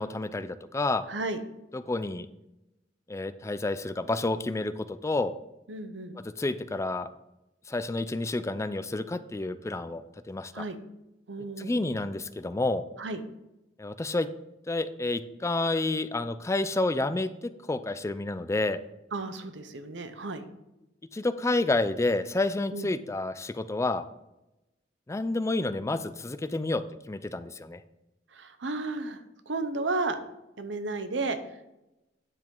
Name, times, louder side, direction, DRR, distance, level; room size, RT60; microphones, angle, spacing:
voice 1, 0.0-1.0 1.7-2.3 3.1-5.3 6.4-7.1 7.7-10.0 10.3-10.6 11.6-12.9 13.8-14.3 14.7-18.8 21.1-24.0 25.1-27.8, left 2 dB, 15° left, 12 dB, 0.4 m, -29 dB
voice 2, 1.1-1.4 5.7-6.2 10.5-10.8 11.3-11.9 13.0-13.2 19.1-20.5 22.7-22.9 28.3-30.2 30.6-31.7, right 3 dB, 85° right, 10 dB, 0.9 m, -33 dB
9.4 x 7.5 x 3.8 m, 0.92 s
head